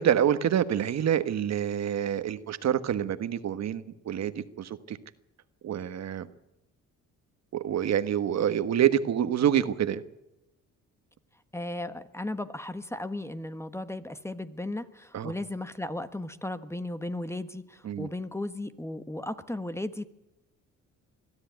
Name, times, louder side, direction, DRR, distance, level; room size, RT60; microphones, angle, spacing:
voice 1, 0.0-5.0 5.6-6.3 7.5-10.0 15.1-15.3 17.8-18.1, right 9 dB, 60° right, 12 dB, 1.3 m, -27 dB
voice 2, 11.5-20.0, left 1 dB, 10° left, 11 dB, 1.3 m, -35 dB
22.0 x 13.0 x 9.3 m, 0.92 s
cardioid pair, 90°, 30 cm